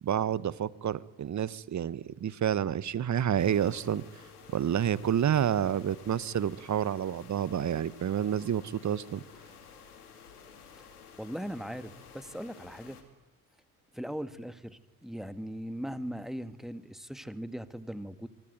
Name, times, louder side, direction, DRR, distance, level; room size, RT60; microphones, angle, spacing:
voice 1, 0.0-4.0 4.5-9.2, right 9 dB, 40° right, 19 dB, 1.2 m, -29 dB
sound 1, 3.4-13.0, left 6 dB, 90° left, 2.7 m, -52 dB
voice 2, 11.2-13.0 13.9-18.3, equal, ahead, 11 dB, 1.9 m, -39 dB
25.0 x 24.0 x 9.4 m, 1.1 s
hypercardioid pair, 45°, 44 cm